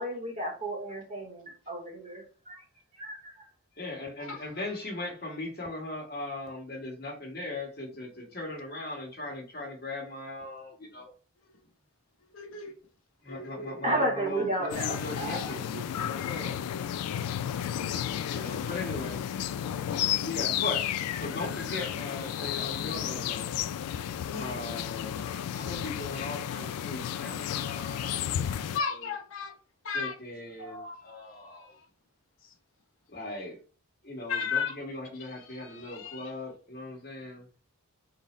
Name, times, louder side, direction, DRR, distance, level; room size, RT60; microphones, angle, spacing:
voice 1, 0.0-2.6 3.0-3.5 13.8-15.8, right 1 dB, 30° right, 0.8 m, -33 dB
voice 2, 3.8-11.1 13.2-15.6 15.9-16.6 18.3-19.3 20.2-20.8 21.2-23.5 24.4-25.2 25.5-28.8 29.9-31.7 33.1-33.6 34.0-37.5, left 2 dB, 45° left, 1.2 m, -39 dB
voice 3, 12.3-12.7 13.3-13.7 14.9-15.6 21.3-21.8 24.2-24.6 28.7-29.5 29.8-30.2 30.6-31.7 34.3-34.7 35.2-36.3, left 6 dB, 60° left, 0.8 m, -36 dB
sound 1, 14.7-28.8, left 10 dB, 90° left, 0.3 m, -32 dB
3.9 x 2.0 x 4.1 m
head